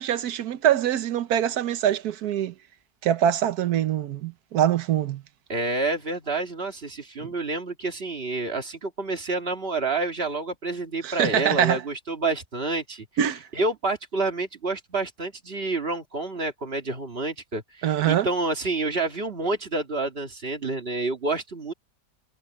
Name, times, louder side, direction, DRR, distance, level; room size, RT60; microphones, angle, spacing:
voice 1, 0.0-2.5 3.0-5.2 11.0-11.8 13.2-13.4 17.8-18.3, right 10 dB, 85° right, 1.4 m, -23 dB
voice 2, 5.5-13.1 13.5-21.7, right 3 dB, 40° right, 2.3 m, -28 dB
omnidirectional pair, 1.6 m